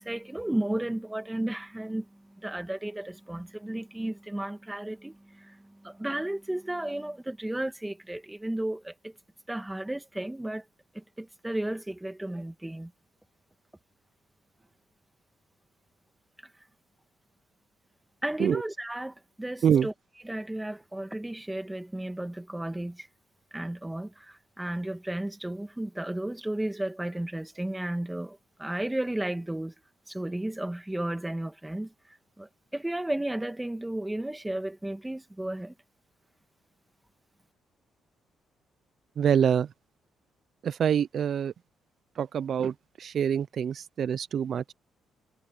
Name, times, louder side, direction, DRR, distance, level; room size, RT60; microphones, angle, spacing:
voice 1, 0.0-9.1 9.5-10.6 10.9-12.9 18.2-19.9 20.2-23.1 23.5-29.7 30.1-35.7, right 1 dB, 10° right, 2.0 m, -34 dB
voice 2, 39.2-39.7 40.6-41.5 42.2-44.7, right 8 dB, 60° right, 0.4 m, -26 dB
cardioid pair, 90°, 0 cm